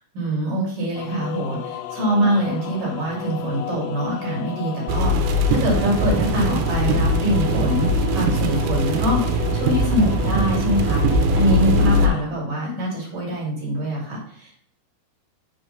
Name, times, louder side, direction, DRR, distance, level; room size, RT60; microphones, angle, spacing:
voice 1, 0.1-14.5, right 1 dB, 55° right, -3 dB, 3.2 m, -24 dB
sound 1, 1.0-12.2, left 11 dB, 85° left, 2.8 m, -34 dB
sound 2, 4.9-12.1, equal, 85° right, 2.8 m, -20 dB
6.5 x 3.1 x 5.4 m, 0.66 s
omnidirectional pair, 4.9 m